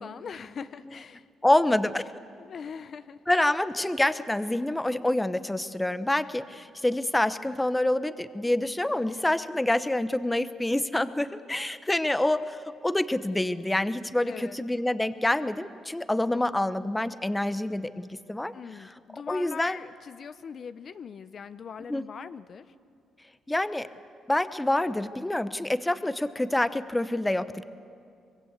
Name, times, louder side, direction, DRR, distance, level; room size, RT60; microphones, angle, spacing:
voice 1, 0.0-1.3 2.4-3.2 14.3-14.6 18.5-22.7, left 6 dB, 50° left, 13 dB, 0.6 m, -41 dB
voice 2, 1.4-2.1 3.3-18.5 19.3-19.8 21.9-22.0 23.5-23.9 24.3-27.6, left 1 dB, 10° left, 13 dB, 0.9 m, -27 dB
24.5 x 21.5 x 8.2 m, 2.4 s
cardioid pair, 90°, 0 cm